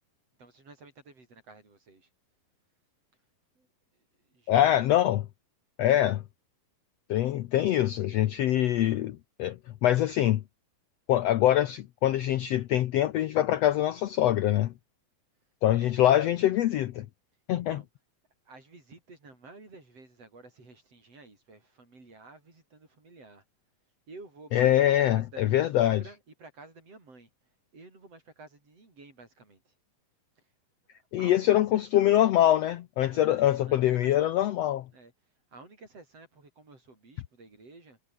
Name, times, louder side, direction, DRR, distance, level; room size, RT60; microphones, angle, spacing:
voice 1, 0.4-2.1 3.6-3.7 4.3-4.8 15.8-15.9 17.5-17.9 18.5-23.4 24.1-24.7 25.1-27.3 27.7-29.6 30.9-32.1 33.1-34.5 34.9-35.1 35.5-38.0, right 3 dB, 45° right, 8.0 m, -51 dB
voice 2, 4.5-5.3 5.8-6.2 7.1-10.4 11.1-14.7 15.6-17.1 17.5-17.8 24.5-26.0 31.1-34.9, left 12 dB, 85° left, 1.4 m, -24 dB
omnidirectional pair, 4.0 m